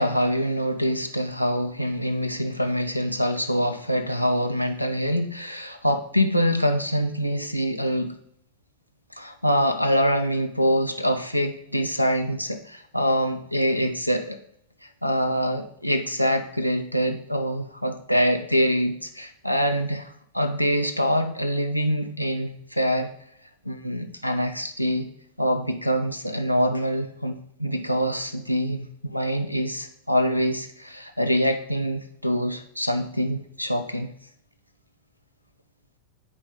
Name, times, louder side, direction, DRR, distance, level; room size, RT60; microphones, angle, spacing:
voice 1, 0.0-8.1 9.1-14.4 15.0-23.1 23.6-25.1 25.4-34.1, equal, 90° right, 9 dB, 0.5 m, -25 dB
9.7 x 4.4 x 3.5 m, 0.72 s
figure-of-eight pair, 90°, 0 cm